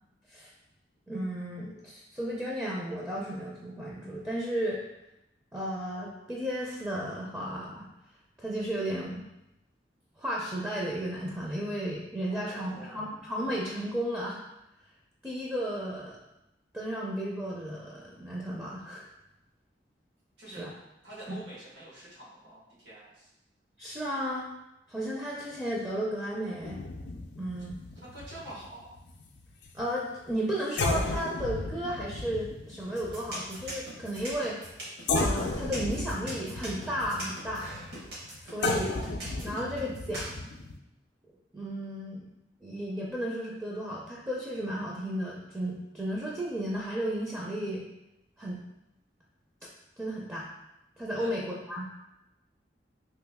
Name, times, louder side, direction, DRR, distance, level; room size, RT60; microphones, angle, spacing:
voice 1, 1.1-4.8 5.5-7.9 8.4-9.2 10.2-14.4 15.2-16.2 16.7-19.0 20.5-20.7 21.3-21.4 23.8-24.5 24.9-26.8 27.4-27.8 29.7-34.7 35.2-37.8 38.4-38.9 39.4-40.4 41.5-42.2 42.6-47.9 48.4-48.6 50.0-50.5 51.0-51.9, equal, 10° right, -4 dB, 0.4 m, -34 dB
voice 2, 12.3-13.1 20.4-20.7 21.0-23.3 28.1-28.9 51.2-51.3, right 1 dB, 85° right, -6 dB, 1.3 m, -46 dB
sound 1, 26.6-29.9 30.3-30.4 30.8-34.8 35.1-40.8, left 2 dB, 65° left, 0.4 m, -34 dB
sound 2, 32.8-40.3, right 1 dB, 65° right, 1.1 m, -41 dB
3.0 x 2.6 x 3.4 m, 0.89 s
head